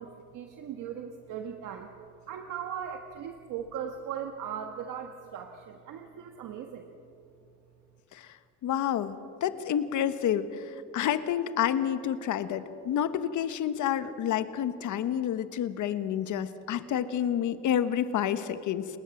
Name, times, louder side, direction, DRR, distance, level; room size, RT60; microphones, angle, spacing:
voice 1, 0.0-1.9 2.3-6.9, right 8 dB, 85° right, 5 dB, 1.5 m, -38 dB
voice 2, 8.6-18.9, left 9 dB, 80° left, 11 dB, 1.3 m, -29 dB
30.0 x 18.5 x 7.2 m, 2.5 s
cardioid pair, 90°, 30 cm